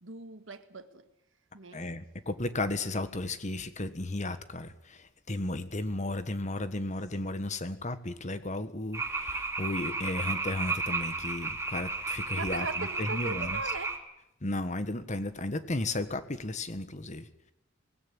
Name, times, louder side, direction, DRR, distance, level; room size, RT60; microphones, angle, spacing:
voice 1, 0.0-1.1 1.5-1.8 12.3-14.0, right 3 dB, 70° right, 1.7 m, -39 dB
voice 2, 1.7-13.6 14.4-17.3, left 2 dB, 35° left, 1.5 m, -34 dB
sound 1, 8.9-14.0, right 3 dB, 15° right, 2.4 m, -33 dB
19.5 x 17.0 x 10.0 m
head